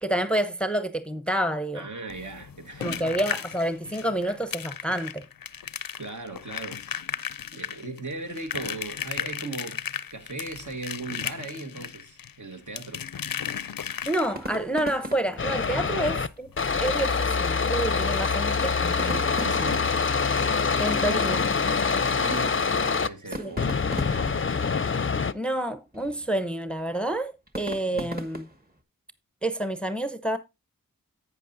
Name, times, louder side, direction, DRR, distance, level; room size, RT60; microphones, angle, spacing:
voice 1, 0.0-1.9 2.8-5.2 14.1-16.5 16.8-19.2 20.8-21.5 23.4-23.5 25.3-28.5 29.4-30.4, right 1 dB, 5° left, 0.7 m, -28 dB
voice 2, 1.7-3.2 6.0-6.8 7.5-9.8 10.1-13.0 15.7-16.2 19.0-20.0 22.0-24.5 27.9-28.1, right 3 dB, 60° right, 1.4 m, -38 dB
sound 1, 2.1-14.6 16.1-16.2 16.5-16.6 17.0-17.1, left 8 dB, 90° left, 0.5 m, -35 dB
sound 2, 14.2-28.8, equal, 25° right, 1.4 m, -42 dB
sound 3, 15.4-16.3 16.6-23.1 23.6-25.3, left 5 dB, 40° left, 0.5 m, -25 dB
11.0 x 8.3 x 2.6 m
wide cardioid pair, 60°, 33 cm